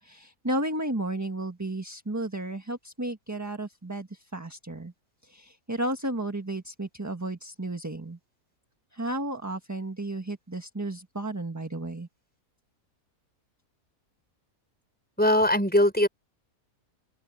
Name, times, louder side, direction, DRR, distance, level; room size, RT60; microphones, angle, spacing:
voice 1, 0.0-4.9 5.2-8.2 8.9-12.1, right 1 dB, 10° right, 1.4 m, -33 dB
voice 2, 15.2-16.1, left 1 dB, 5° left, 4.2 m, -21 dB
open air
omnidirectional pair, 1.5 m